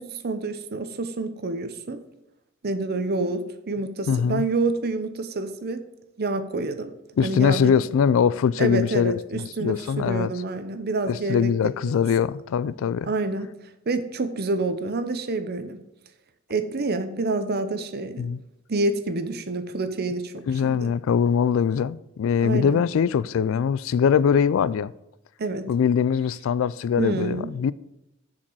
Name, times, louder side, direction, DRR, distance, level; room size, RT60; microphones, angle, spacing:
voice 1, 0.0-2.0 2.6-5.8 6.2-6.9 7.2-7.8 8.6-12.0 13.0-13.5 13.9-15.8 16.5-18.3 18.7-20.9 22.4-22.8 25.4-25.7 27.0-27.5, right 3 dB, 50° right, 0.7 m, -28 dB
voice 2, 4.1-4.4 7.2-10.3 11.1-13.1 18.2-18.4 20.5-24.9 25.7-27.7, left 7 dB, 65° left, 0.3 m, -22 dB
7.0 x 5.1 x 6.1 m
head